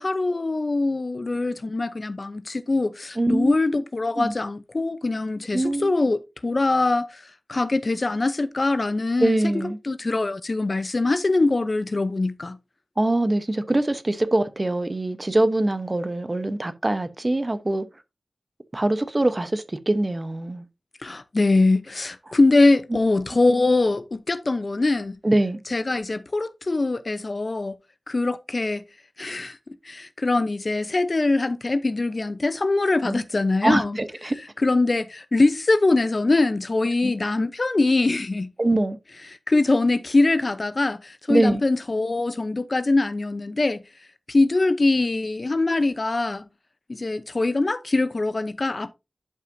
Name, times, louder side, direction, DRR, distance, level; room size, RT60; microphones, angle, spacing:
voice 1, 0.0-7.2 7.5-12.6 21.0-25.2 25.7-27.8 28.1-28.8 29.2-29.6 29.8-34.0 34.6-38.5 39.5-43.8 44.3-46.5 46.9-48.9, left 2 dB, 50° left, 0.7 m, -23 dB
voice 2, 3.2-3.6 4.2-4.3 5.5-5.9 9.2-9.8 13.0-17.8 18.7-20.6 22.3-22.4 25.2-25.6 33.0-33.2 33.6-34.4 37.0-37.1 38.6-39.0 41.3-41.6, right 2 dB, 35° right, 0.9 m, -23 dB
10.5 x 5.7 x 2.7 m
cardioid pair, 45°, 0 cm